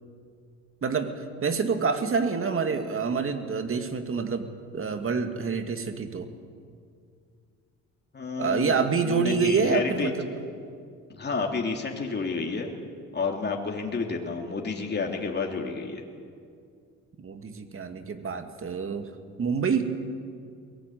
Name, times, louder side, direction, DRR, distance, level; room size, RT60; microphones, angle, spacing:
voice 1, 0.8-6.3 8.4-10.3 17.2-19.1 19.4-19.9, right 5 dB, 45° right, 7 dB, 2.2 m, -27 dB
voice 2, 8.1-10.1 11.2-12.7 13.1-16.0, left 4 dB, 35° left, 1 dB, 3.1 m, -30 dB
22.5 x 18.5 x 9.3 m, 2.3 s
cardioid pair, 90°, 30 cm